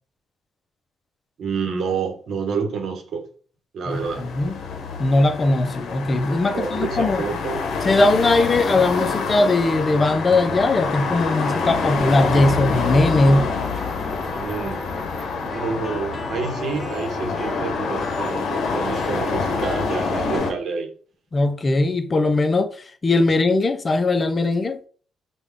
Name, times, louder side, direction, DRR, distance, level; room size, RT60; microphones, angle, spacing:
voice 1, 1.4-3.2 3.7-4.3 6.4-7.6 14.4-14.9 15.4-20.9, right 5 dB, 60° right, 0.9 m, -28 dB
sound 1, 3.9-20.5, left 4 dB, 70° left, 0.7 m, -26 dB
voice 2, 3.9-4.6 5.0-7.2 7.8-13.5 21.3-22.8 23.0-24.8, left 2 dB, 35° left, 0.5 m, -19 dB
sound 2, 10.7-20.4, left 1 dB, 10° left, 1.1 m, -38 dB
3.4 x 2.3 x 3.6 m
cardioid pair, 90°, 0 cm